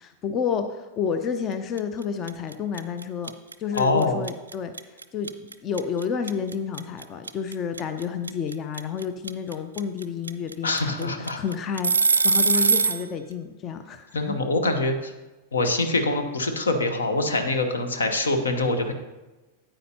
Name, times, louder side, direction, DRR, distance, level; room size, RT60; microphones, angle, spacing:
voice 1, 0.0-3.3 3.6-4.7 5.1-14.4, left 6 dB, 30° left, 8 dB, 0.5 m, -30 dB
sound 1, 1.8-2.0 2.3-13.0, right 4 dB, 75° right, 0.3 m, -22 dB
voice 2, 3.7-4.2 10.6-11.4 12.5-12.7 14.1-15.1 15.5-18.9, left 2 dB, 70° left, 7 dB, 0.9 m, -24 dB
9.2 x 8.8 x 2.8 m, 1.1 s
figure-of-eight pair, 90°, 0 cm